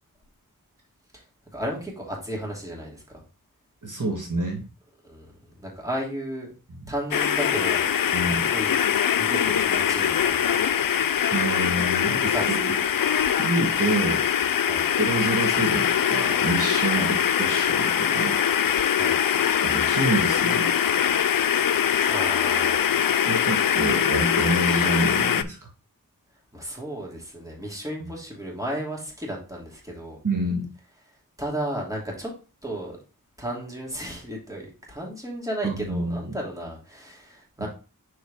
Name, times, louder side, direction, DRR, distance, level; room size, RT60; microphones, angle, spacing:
voice 1, 1.5-3.0 5.0-6.5 6.9-7.9 8.2-8.8 9.1-10.5 12.0-12.7 14.6-14.9 16.9-17.1 18.9-19.2 22.0-22.8 26.5-30.2 31.4-32.3 32.6-33.0 33.4-37.7, right 1 dB, 10° right, -2 dB, 2.8 m, -34 dB
voice 2, 3.8-4.6 8.1-8.5 11.3-12.8 13.4-14.2 15.0-18.4 19.6-21.0 23.3-25.7 28.0-28.1 30.2-30.7 35.6-36.4 37.6-37.7, right 2 dB, 60° right, -1 dB, 1.7 m, -27 dB
sound 1, 7.1-25.4, left 9 dB, 70° left, 0.5 m, -23 dB
6.1 x 4.8 x 3.5 m, 0.33 s
wide cardioid pair, 45°, 35 cm